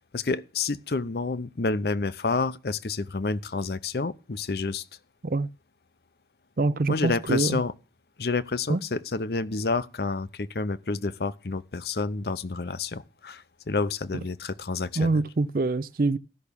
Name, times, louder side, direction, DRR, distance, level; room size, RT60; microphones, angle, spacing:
voice 1, 0.1-4.8 6.9-7.7 8.2-15.2, left 3 dB, 65° left, 0.7 m, -29 dB
voice 2, 6.6-7.6 8.7-8.8 15.0-16.2, right 3 dB, 50° right, 0.5 m, -25 dB
13.5 x 6.0 x 6.8 m
head